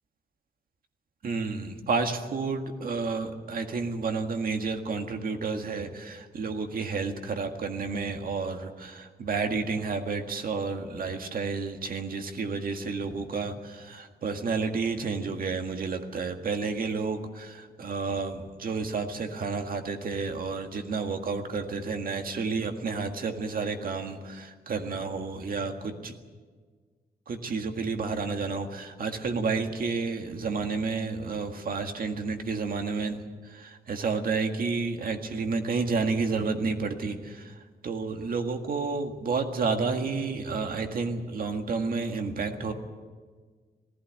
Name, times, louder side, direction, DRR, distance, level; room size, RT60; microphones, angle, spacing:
voice 1, 1.2-26.1 27.3-42.7, right 4 dB, 65° right, 5 dB, 1.8 m, -31 dB
19.0 x 15.5 x 9.5 m, 1.5 s
wide cardioid pair, 145°, 16 cm